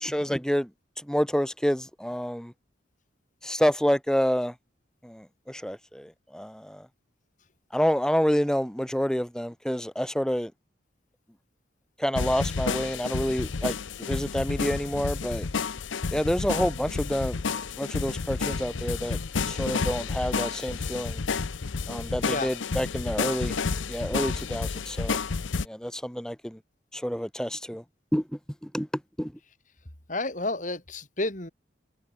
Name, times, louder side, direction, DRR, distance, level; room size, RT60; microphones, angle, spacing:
voice 1, 0.0-0.7 1.0-2.5 3.4-4.5 5.0-6.9 7.7-10.5 12.0-13.8 14.1-15.5 16.1-17.4 17.8-19.2 19.5-21.2 21.9-23.6 23.9-25.2 25.6-26.6 26.9-27.8 28.1-28.2 28.6-28.9 29.2-29.3, equal, 5° left, 1.1 m, -28 dB
sound 1, 12.2-25.7, left 4 dB, 85° left, 0.7 m, -30 dB
voice 2, 30.1-31.5, left 2 dB, 40° left, 3.7 m, -30 dB
head